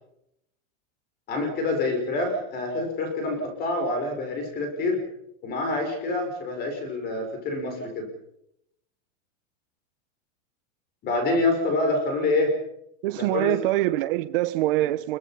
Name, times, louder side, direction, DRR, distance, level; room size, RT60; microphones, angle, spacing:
voice 1, 1.3-5.0 5.4-8.1 11.0-12.5 13.1-13.5 14.8-14.9, left 2 dB, 25° left, 5.2 m, -26 dB
voice 2, 13.0-15.2, right 16 dB, 45° right, 1.0 m, -24 dB
25.5 x 23.0 x 5.6 m
supercardioid pair, 165°, 37 cm